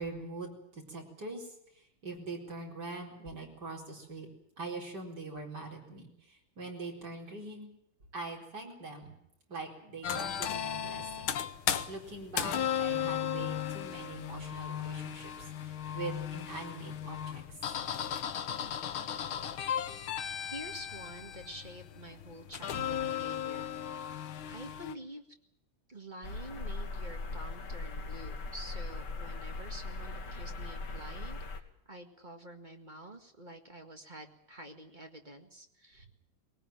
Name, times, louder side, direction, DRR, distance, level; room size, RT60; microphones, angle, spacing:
voice 1, 0.0-1.5 2.0-4.3 4.6-7.7 8.1-9.1 9.5-11.3 11.9-17.4, right 3 dB, 55° right, 0 dB, 5.1 m, -43 dB
sound 1, 10.0-24.9, left 9 dB, 85° left, 1.9 m, -36 dB
voice 2, 20.4-24.1 24.5-25.3 25.9-36.1, right 1 dB, 25° right, 4 dB, 1.8 m, -48 dB
sound 2, 26.2-31.6, left 3 dB, 60° left, 2.2 m, -39 dB
20.0 x 18.5 x 9.0 m, 0.77 s
omnidirectional pair, 2.2 m